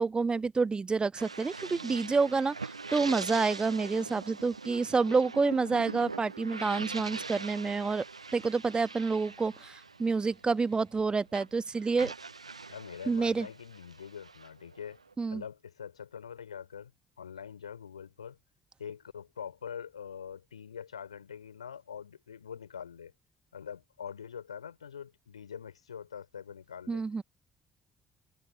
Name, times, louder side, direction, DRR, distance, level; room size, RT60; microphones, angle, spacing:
voice 1, 0.0-8.0 8.3-12.1 13.1-13.5 15.2-15.4 26.9-27.2, right 4 dB, 30° right, 1.2 m, -28 dB
sound 1, 1.2-11.0 11.3-15.1, right 4 dB, 85° right, 0.4 m, -42 dB
voice 2, 12.7-15.0 15.3-16.9 17.2-18.4 18.8-23.1 23.5-27.0, left 7 dB, 80° left, 4.2 m, -44 dB
figure-of-eight pair, 45°, 3 cm